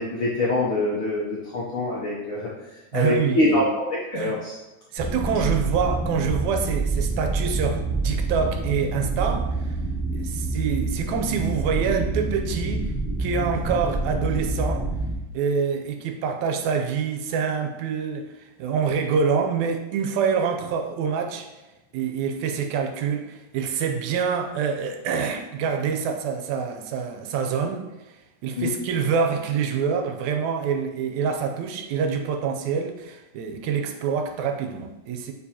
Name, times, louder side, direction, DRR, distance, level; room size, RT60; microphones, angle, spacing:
voice 1, 0.0-2.5 2.9-4.6 28.6-28.7, left 1 dB, 70° left, -5 dB, 1.3 m, -24 dB
voice 2, 2.9-3.7 4.1-4.3 4.9-9.8 10.1-12.9 13.2-14.9 15.3-21.5 21.9-27.8 28.4-35.3, right 6 dB, 85° right, 4 dB, 1.9 m, -26 dB
sound 1, 5.0-15.1, right 3 dB, 5° right, 1.3 m, -27 dB
6.9 x 4.7 x 2.9 m, 1.0 s
omnidirectional pair, 3.4 m